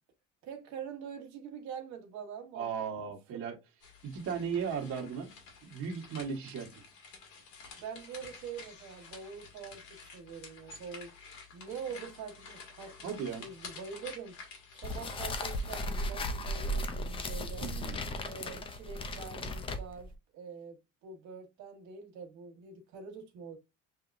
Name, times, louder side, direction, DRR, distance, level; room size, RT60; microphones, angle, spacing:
voice 1, 0.4-2.7 3.3-3.4 7.8-9.9 10.1-11.1 11.5-14.4 14.7-17.7 18.2-23.6, right 6 dB, 70° right, 1.3 m, -45 dB
voice 2, 2.5-3.5 4.0-5.3 5.6-6.8 13.0-13.4 17.6-18.0, right 6 dB, 45° right, 1.2 m, -36 dB
sound 1, 3.8-15.9, left 4 dB, 90° left, 2.1 m, -51 dB
sound 2, 14.8-20.1, left 1 dB, 20° left, 0.4 m, -36 dB
6.9 x 3.0 x 2.5 m
cardioid pair, 175°, 30 cm